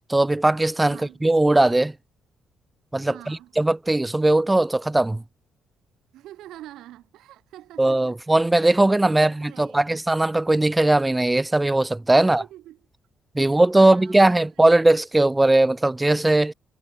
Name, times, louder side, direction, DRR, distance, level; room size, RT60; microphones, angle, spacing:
voice 1, 0.1-1.9 2.9-5.2 7.8-12.4 13.3-16.5, right 2 dB, 15° right, 0.3 m, -19 dB
voice 2, 0.9-1.2 3.1-3.5 6.1-8.4 8.8-10.0 12.2-12.8 13.4-14.7, right 14 dB, 85° right, 5.4 m, -46 dB
cardioid pair, 90°, 0 cm